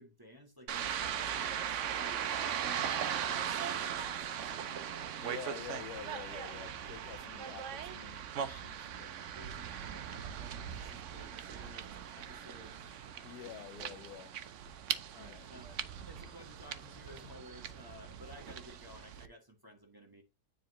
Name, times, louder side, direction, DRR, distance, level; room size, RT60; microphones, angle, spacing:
voice 1, 0.0-5.2 6.9-7.4 9.3-12.9 15.1-15.8 16.1-20.2, equal, 15° right, 1.3 m, -55 dB
sound 1, 0.7-19.3, right 9 dB, 60° right, 0.9 m, -39 dB
voice 2, 5.2-9.2 13.2-14.3 15.2-15.4, left 10 dB, 80° left, 1.2 m, -48 dB
9.6 x 3.8 x 3.0 m
omnidirectional pair, 1.7 m